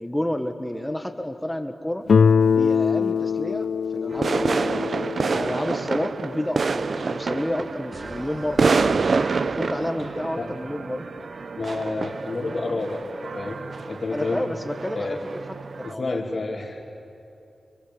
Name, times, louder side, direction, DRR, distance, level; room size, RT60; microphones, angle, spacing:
voice 1, 0.0-2.0 2.5-4.6 5.3-9.0 9.4-11.1 14.1-16.4, left 1 dB, 10° left, 6 dB, 1.4 m, -30 dB
Guitar, 2.1-6.9, left 6 dB, 75° left, 0.5 m, -23 dB
sound 1, 4.1-15.9, right 4 dB, 65° right, 0.6 m, -27 dB
sound 2, 7.9-10.5, right 1 dB, 45° right, 4.5 m, -46 dB
voice 2, 11.6-13.6 13.9-14.5 14.9-15.2 15.8-16.8, left 3 dB, 50° left, -5 dB, 2.8 m, -29 dB
27.0 x 26.0 x 8.6 m, 2.7 s
wide cardioid pair, 100°, 0 cm